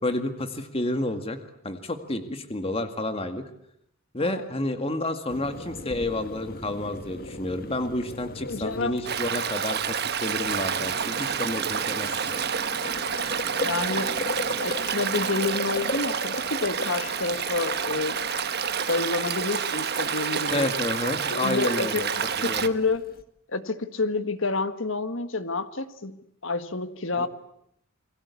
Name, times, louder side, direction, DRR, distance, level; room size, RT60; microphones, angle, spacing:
voice 1, 0.0-1.4 1.6-3.4 4.1-12.3 20.5-22.1 22.4-22.6 27.2-27.3, left 1 dB, 25° left, 8 dB, 2.1 m, -30 dB
sound 1, 5.0-9.4, equal, 30° right, 5.3 m, -51 dB
Boiling, 5.3-23.2, left 2 dB, 45° left, 1.8 m, -38 dB
voice 2, 8.4-9.0 13.6-18.1 18.9-20.7 21.3-22.0 22.4-23.0 23.5-27.3, left 3 dB, 65° left, 11 dB, 1.7 m, -29 dB
Stream, 9.0-22.7, right 7 dB, 50° right, 1.2 m, -29 dB
29.0 x 22.5 x 8.5 m, 0.74 s
head